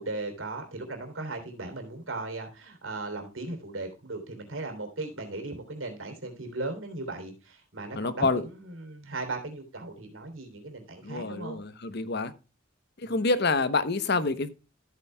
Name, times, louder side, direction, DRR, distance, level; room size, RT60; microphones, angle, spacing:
voice 1, 0.0-11.6 13.0-13.3, right 2 dB, 85° right, 3.2 m, -37 dB
voice 2, 8.0-8.4 11.0-12.3 13.0-14.5, left 3 dB, 55° left, 0.9 m, -27 dB
14.0 x 8.5 x 2.2 m
head